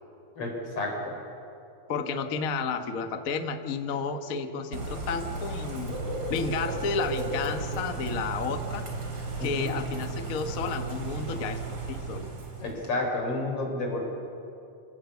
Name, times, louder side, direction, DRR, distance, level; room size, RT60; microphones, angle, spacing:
voice 1, 0.8-1.2 9.4-9.7 12.6-14.0, left 2 dB, 50° left, 1 dB, 5.2 m, -30 dB
voice 2, 1.9-6.0 6.3-8.8 9.4-11.6 11.9-12.3, left 4 dB, 85° left, 7 dB, 0.7 m, -31 dB
Bird / Rain, 4.7-12.9, right 3 dB, 40° right, 3.6 m, -34 dB
27.0 x 16.5 x 8.2 m, 2.7 s
omnidirectional pair, 3.5 m